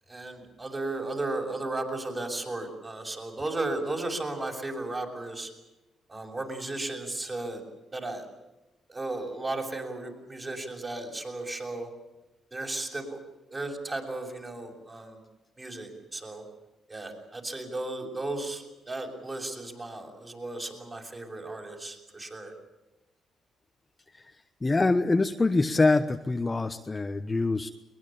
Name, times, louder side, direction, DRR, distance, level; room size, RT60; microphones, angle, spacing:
voice 1, 0.1-5.5 6.1-7.6 7.9-8.3 8.9-11.9 12.5-13.2 13.5-15.2 15.6-16.4 16.9-22.5, right 2 dB, 25° right, 2 dB, 6.7 m, -35 dB
voice 2, 24.6-27.7, left 3 dB, 20° left, 7 dB, 1.1 m, -25 dB
22.0 x 21.0 x 8.8 m, 1.0 s
cardioid pair, 90°, 0 cm